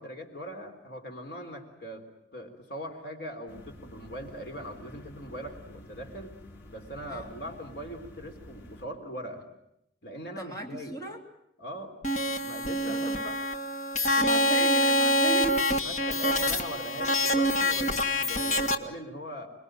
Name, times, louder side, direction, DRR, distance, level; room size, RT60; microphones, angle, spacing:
voice 1, 0.0-2.0 2.3-6.3 6.7-9.4 10.0-11.0 11.6-12.0 12.3-13.1 15.8-19.5, equal, 60° left, 5 dB, 3.9 m, -41 dB
sound 1, 3.5-8.9, left 1 dB, 90° left, 4.0 m, -49 dB
voice 2, 10.4-11.2 12.8-13.4 14.2-15.7, right 2 dB, 20° left, 2 dB, 3.5 m, -36 dB
sound 2, 12.0-18.7, equal, 40° left, 1.5 m, -26 dB
26.5 x 21.5 x 9.0 m, 0.78 s
head